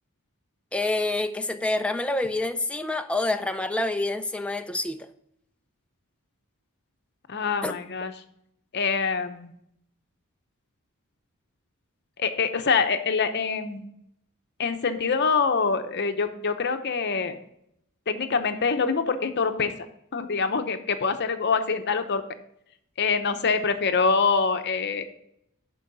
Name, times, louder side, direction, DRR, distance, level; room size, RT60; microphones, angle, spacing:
voice 1, 0.7-5.1 7.6-7.7, left 2 dB, 5° left, 0.4 m, -27 dB
voice 2, 7.3-8.1 8.7-9.5 12.2-13.9 14.6-17.4 18.1-19.7 20.1-22.2 23.0-25.0, left 5 dB, 50° left, 0.8 m, -25 dB
11.0 x 4.7 x 4.0 m
head